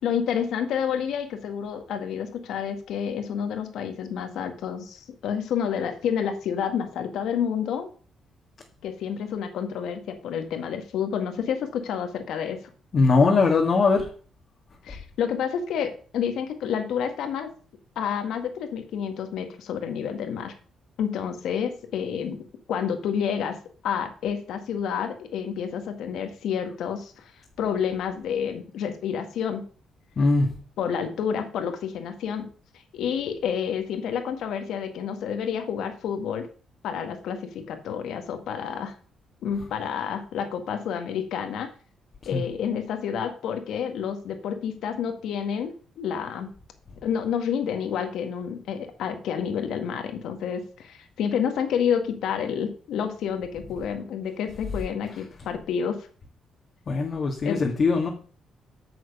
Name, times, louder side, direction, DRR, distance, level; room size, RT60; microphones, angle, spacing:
voice 1, 0.0-7.9 8.8-12.6 14.8-17.5 18.0-20.5 21.0-22.4 22.7-23.6 23.8-27.2 27.6-29.6 30.8-32.5 32.9-36.5 36.8-38.9 39.4-41.7 42.3-46.5 47.0-56.0 57.4-57.7, left 7 dB, 80° left, 7 dB, 1.9 m, -29 dB
voice 2, 12.9-14.1 30.2-30.5 42.3-42.4 56.9-58.1, left 4 dB, 45° left, 0 dB, 1.9 m, -21 dB
9.7 x 6.4 x 6.8 m, 0.41 s
cardioid pair, 100°, 0 cm